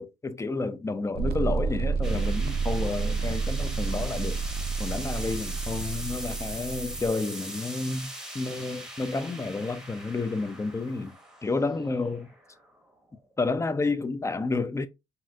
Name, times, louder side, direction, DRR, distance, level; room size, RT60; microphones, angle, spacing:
voice 1, 0.0-4.4 4.8-8.1 8.3-11.1 11.4-12.3 13.4-14.9, left 3 dB, 15° left, 0.4 m, -30 dB
sound 1, 1.2-7.1, right 4 dB, 55° right, 0.4 m, -30 dB
sound 2, 2.0-13.2, right 1 dB, 5° right, 0.8 m, -41 dB
4.2 x 2.5 x 2.2 m
cardioid pair, 90°, 20 cm